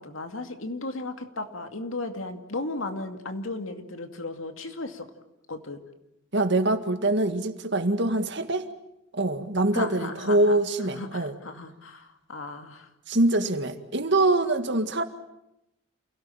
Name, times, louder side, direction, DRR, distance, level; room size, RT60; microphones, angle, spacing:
voice 1, 0.0-5.1 5.5-5.8 9.7-10.5 10.9-12.9, left 2 dB, 80° left, 6 dB, 2.4 m, -35 dB
voice 2, 6.3-8.7 9.1-11.4 13.1-15.0, right 2 dB, 60° right, 8 dB, 1.9 m, -24 dB
28.5 x 17.5 x 8.9 m, 0.87 s
head